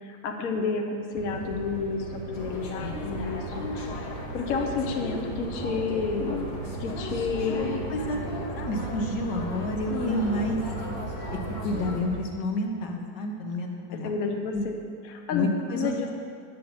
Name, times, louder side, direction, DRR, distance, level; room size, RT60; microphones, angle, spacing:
voice 1, 0.0-3.7 4.3-6.5 6.8-7.7 9.9-10.6 13.9-14.7 15.1-15.5 15.7-16.1, left 5 dB, 60° left, 3 dB, 1.1 m, -30 dB
sound 1, 1.1-12.2, right 4 dB, 55° right, 1.2 m, -38 dB
sound 2, 2.3-12.0, left 1 dB, 45° left, 1.1 m, -36 dB
voice 2, 7.2-8.2 8.6-10.6 11.3-14.1 14.5-14.6 15.3-16.0, left 1 dB, 80° left, 1 dB, 1.7 m, -30 dB
8.9 x 6.4 x 7.0 m, 2.2 s
omnidirectional pair, 1.8 m